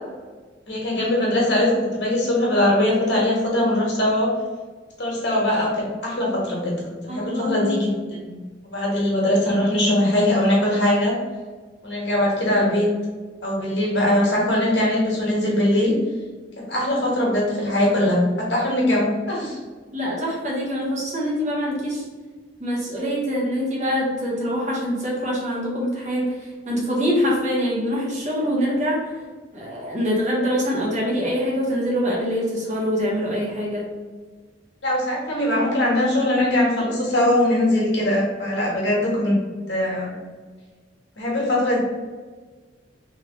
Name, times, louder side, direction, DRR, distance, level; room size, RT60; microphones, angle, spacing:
voice 1, 0.7-4.3 5.0-6.7 7.0-8.4 8.7-11.1 11.8-12.9 13.4-15.9 16.6-19.6 34.8-39.4 39.7-40.1 41.2-41.8, left 1 dB, 70° left, -4 dB, 1.4 m, -21 dB
voice 2, 7.1-7.8 19.9-22.0 22.6-29.2 29.5-33.9, equal, 40° right, -5 dB, 1.2 m, -24 dB
3.5 x 3.2 x 3.0 m, 1.4 s
head